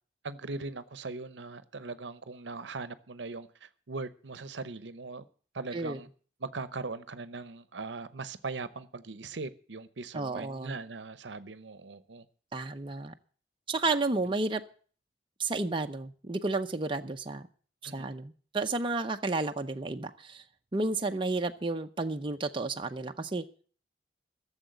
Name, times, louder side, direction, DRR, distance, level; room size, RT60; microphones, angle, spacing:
voice 1, 0.2-5.2 5.5-6.1 6.4-12.2 17.8-18.1, right 3 dB, 70° right, 15 dB, 0.8 m, -40 dB
voice 2, 10.1-10.8 12.5-13.1 13.7-14.6 15.4-17.4 17.8-20.4 20.7-23.4, right 3 dB, 30° right, 5 dB, 0.7 m, -32 dB
14.5 x 7.3 x 7.9 m, 0.43 s
head